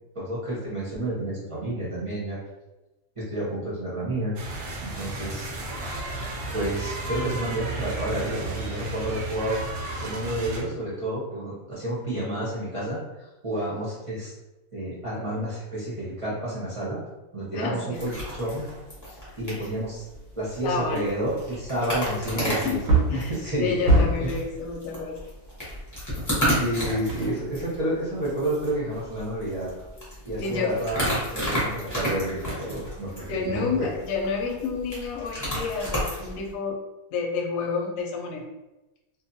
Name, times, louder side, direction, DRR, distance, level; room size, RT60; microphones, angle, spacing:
voice 1, 0.1-2.4 3.2-4.3 4.8-5.5 6.5-9.6 10.0-14.3 14.7-17.0 17.3-18.7 19.4-20.0 20.4-22.8 23.1-23.7 24.2-24.3 26.5-29.7 30.2-33.9, right 1 dB, 30° right, -8 dB, 0.7 m, -30 dB
sound 1, 4.4-10.6, right 2 dB, 70° right, 0.9 m, -33 dB
voice 2, 17.5-18.0 19.5-19.7 20.6-21.1 22.4-23.3 23.6-25.2 30.4-30.8 33.3-36.8 37.1-38.5, left 4 dB, 70° left, 1 dB, 0.9 m, -30 dB
sound 2, 17.9-36.5, equal, 20° left, 0.6 m, -33 dB
Wood, 20.6-20.7 21.2-21.3 22.6-24.4 27.1-27.8 28.2-28.3, right 2 dB, 85° right, 1.1 m, -23 dB
2.6 x 2.3 x 2.6 m, 1.0 s
omnidirectional pair, 1.6 m